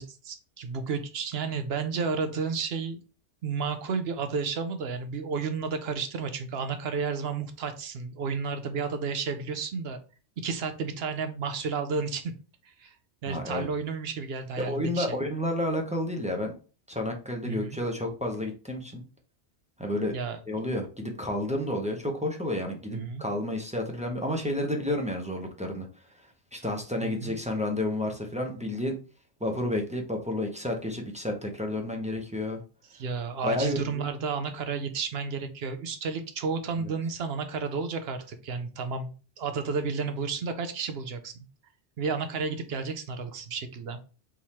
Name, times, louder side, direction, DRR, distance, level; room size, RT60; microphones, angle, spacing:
voice 1, 0.0-3.0 3.4-10.0 10.4-12.3 12.6-12.9 13.2-15.2 17.4-17.8 20.1-20.4 22.9-23.2 27.0-27.3 32.9-41.3 42.0-44.0, right 5 dB, 65° right, 8 dB, 0.8 m, -32 dB
voice 2, 13.3-13.7 14.6-16.5 16.9-19.0 19.8-20.1 20.5-25.9 26.5-29.0 29.4-32.6 33.4-34.0 36.8-36.9, left 1 dB, 10° right, 1 dB, 0.6 m, -30 dB
3.7 x 3.0 x 4.2 m, 0.36 s
omnidirectional pair, 1.2 m